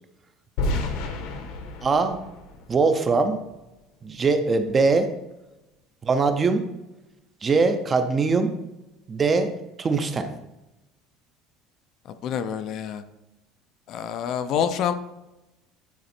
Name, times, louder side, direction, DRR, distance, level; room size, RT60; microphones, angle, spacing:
sound 1, 0.6-3.5, left 2 dB, 65° left, 1.0 m, -31 dB
voice 1, 1.8-2.2 2.7-3.4 4.0-5.1 6.0-6.7 7.4-8.5 9.1-9.5 9.8-10.3, right 4 dB, 15° right, 8 dB, 0.5 m, -22 dB
voice 2, 12.2-13.0 13.9-14.9, left 8 dB, 40° left, 10 dB, 0.4 m, -27 dB
9.5 x 4.2 x 4.2 m, 0.96 s
cardioid pair, 180°, 0 cm